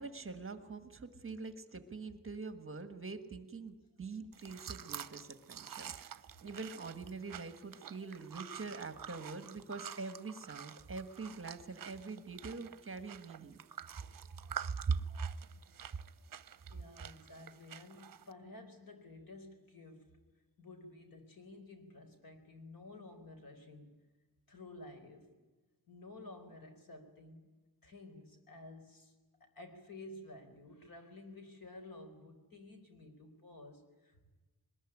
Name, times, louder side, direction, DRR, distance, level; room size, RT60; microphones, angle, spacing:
voice 1, 0.0-13.6 14.9-15.0, right 4 dB, 35° right, 9 dB, 1.5 m, -43 dB
sound 1, 4.3-18.3, right 9 dB, 60° right, 0.8 m, -49 dB
voice 2, 16.7-20.2 20.6-23.9 24.5-25.3 25.9-27.5 27.8-29.1 29.4-34.3, left 2 dB, 65° left, 6 dB, 4.3 m, -52 dB
22.0 x 20.5 x 10.0 m, 1.2 s
wide cardioid pair, 175°, 37 cm